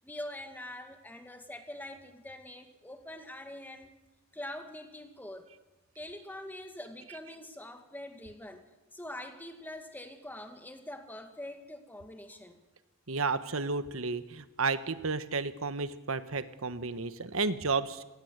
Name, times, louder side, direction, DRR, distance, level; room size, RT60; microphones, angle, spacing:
voice 1, 0.0-3.9 4.3-5.5 6.0-8.6 8.9-12.6, left 1 dB, 10° left, 6 dB, 2.2 m, -44 dB
voice 2, 13.1-18.0, right 4 dB, 80° right, 12 dB, 1.3 m, -32 dB
27.5 x 19.5 x 8.2 m, 1.1 s
head